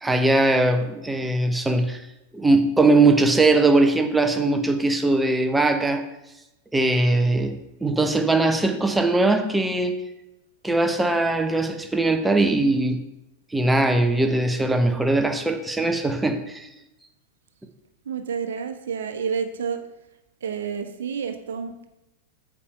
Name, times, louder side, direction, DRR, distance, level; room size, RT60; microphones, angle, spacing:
voice 1, 0.0-2.0 2.3-6.0 6.7-10.0 10.6-13.0 13.5-16.7, right 2 dB, 5° right, 7 dB, 0.9 m, -20 dB
voice 2, 18.0-19.8 20.4-21.9, right 6 dB, 60° right, 8 dB, 0.9 m, -29 dB
8.6 x 4.8 x 6.5 m, 0.94 s
figure-of-eight pair, 90°, 0 cm